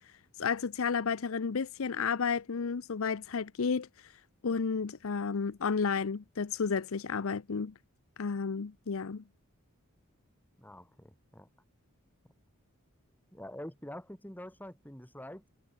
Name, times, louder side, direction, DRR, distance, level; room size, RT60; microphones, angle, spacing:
voice 1, 0.4-3.9 4.4-7.7 8.2-9.2, left 5 dB, 65° left, 0.6 m, -32 dB
voice 2, 10.6-11.5 13.3-15.5, left 1 dB, 10° left, 6.6 m, -46 dB
head